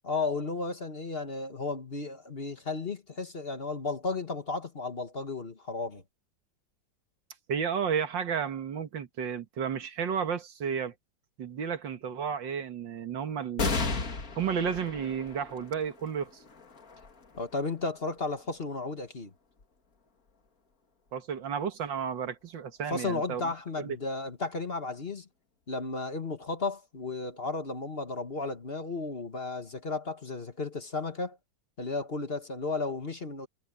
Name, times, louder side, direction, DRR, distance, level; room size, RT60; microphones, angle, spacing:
voice 1, 0.0-6.0 17.4-19.3 22.9-25.3 25.7-31.4 31.8-33.5, left 3 dB, 35° left, 1.6 m, -34 dB
voice 2, 7.5-10.9 11.4-13.7 14.4-16.4 21.1-23.5 23.8-24.0, right 7 dB, 85° right, 2.2 m, -32 dB
sound 1, 13.6-20.5 21.1-21.2 22.3-22.9, left 4 dB, 50° left, 2.6 m, -37 dB
omnidirectional pair, 2.0 m